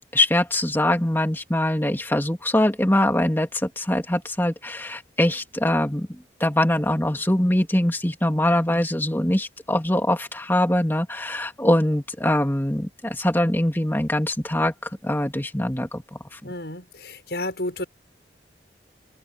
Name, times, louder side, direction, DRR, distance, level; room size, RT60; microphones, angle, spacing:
voice 1, 0.1-6.1 6.4-14.7 15.0-16.5, left 1 dB, 10° left, 2.6 m, -23 dB
voice 2, 16.4-17.9, left 1 dB, 70° left, 6.5 m, -31 dB
head